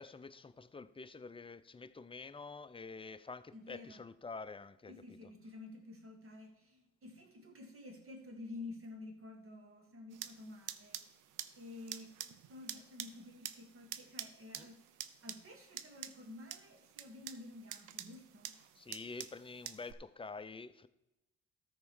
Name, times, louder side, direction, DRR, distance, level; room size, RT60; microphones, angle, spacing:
voice 1, 0.0-5.2 14.6-14.7 18.8-20.9, left 4 dB, 20° left, 0.5 m, -48 dB
voice 2, 3.5-4.0 4.9-11.0 11.6-14.8 15.2-18.5, left 2 dB, 45° right, 2.2 m, -51 dB
sound 1, 10.1-19.9, right 11 dB, 90° right, 0.6 m, -48 dB
13.5 x 4.5 x 6.3 m
cardioid pair, 90°, 30 cm